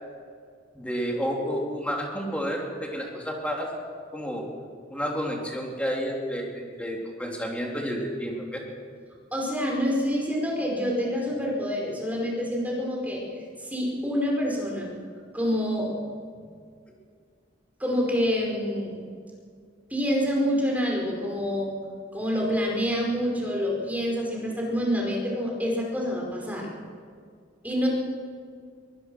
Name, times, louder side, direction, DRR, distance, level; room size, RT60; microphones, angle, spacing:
voice 1, 0.7-3.7 4.1-4.4 4.9-8.6, equal, 5° left, -1 dB, 3.5 m, -30 dB
voice 2, 9.3-13.2 13.6-14.9 15.3-15.9 17.8-18.9 19.9-21.7 22.1-26.7 27.6-27.9, equal, 10° right, -1 dB, 5.0 m, -27 dB
23.5 x 19.5 x 6.3 m, 2.1 s
head